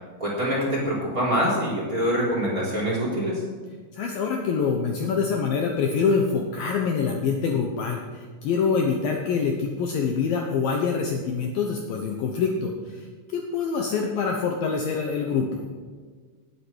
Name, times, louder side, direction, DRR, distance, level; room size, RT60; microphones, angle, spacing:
voice 1, 0.2-3.4, equal, 20° right, -4 dB, 3.6 m, -25 dB
voice 2, 3.9-8.0 8.4-15.7, left 5 dB, 85° left, 1 dB, 2.0 m, -25 dB
19.0 x 8.6 x 6.3 m, 1.5 s
omnidirectional pair, 5.9 m